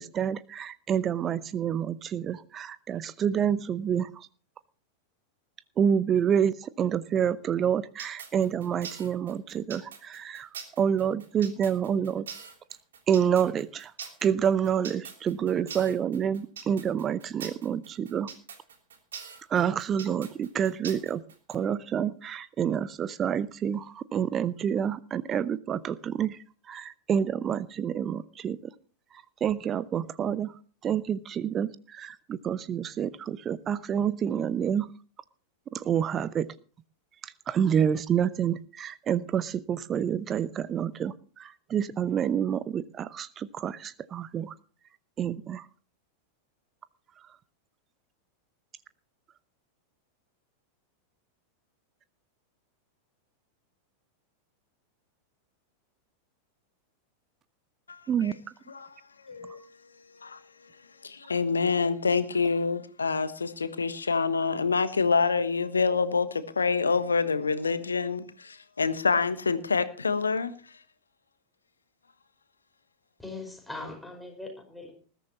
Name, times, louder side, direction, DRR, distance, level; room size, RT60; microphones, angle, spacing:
voice 1, 0.0-4.3 5.8-10.5 10.8-12.3 13.1-13.9 14.2-18.3 19.5-21.2 21.5-28.6 29.1-34.9 35.7-36.5 37.2-44.5 45.2-45.7 58.1-58.3 59.5-59.6, right 8 dB, 25° right, 0.7 m, -28 dB
sound 1, 8.0-21.6, right 6 dB, 65° right, 3.1 m, -43 dB
voice 2, 57.9-58.3 58.7-58.9 59.2-59.6 60.2-60.4 61.0-70.5, left 4 dB, 75° left, 1.2 m, -27 dB
voice 3, 73.2-74.9, left 2 dB, 5° left, 5.2 m, -40 dB
20.5 x 13.0 x 3.0 m
figure-of-eight pair, 90°, 0 cm